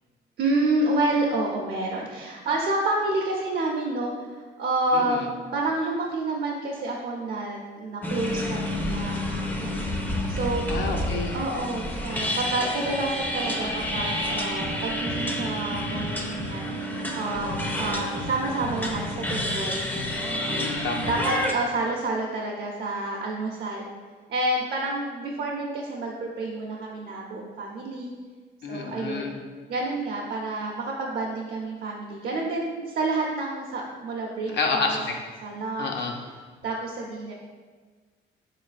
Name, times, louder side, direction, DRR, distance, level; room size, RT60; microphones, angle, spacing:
voice 1, 0.4-10.6 11.3-19.9 20.3-20.7 21.1-23.9 24.3-28.1 28.7-29.2 29.7-35.0 35.4-35.9 36.6-37.3, right 2 dB, 60° right, -1 dB, 0.5 m, -29 dB
voice 2, 4.9-5.3 10.7-11.4 20.5-21.1 28.6-29.3 34.5-35.1 35.8-36.1, left 4 dB, 65° left, 2 dB, 0.5 m, -29 dB
sound 1, 8.0-21.5, left 1 dB, 10° left, 0.4 m, -29 dB
sound 2, 11.9-14.8, equal, 85° left, 1.2 m, -36 dB
3.8 x 3.1 x 2.4 m, 1.5 s
cardioid pair, 90°, 20 cm